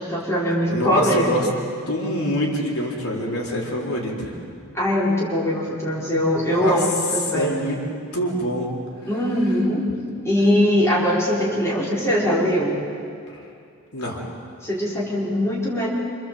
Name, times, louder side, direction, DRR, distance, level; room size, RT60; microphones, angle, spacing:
voice 1, 0.0-1.5 4.7-7.5 9.1-9.9 10.2-12.7 14.6-15.9, equal, 10° left, -6 dB, 5.2 m, -21 dB
voice 2, 0.7-1.5 1.9-4.4 6.5-6.8 7.3-7.8 8.1-8.7 13.9-14.2, equal, 80° left, -2 dB, 4.3 m, -25 dB
27.0 x 27.0 x 7.9 m, 2.4 s
head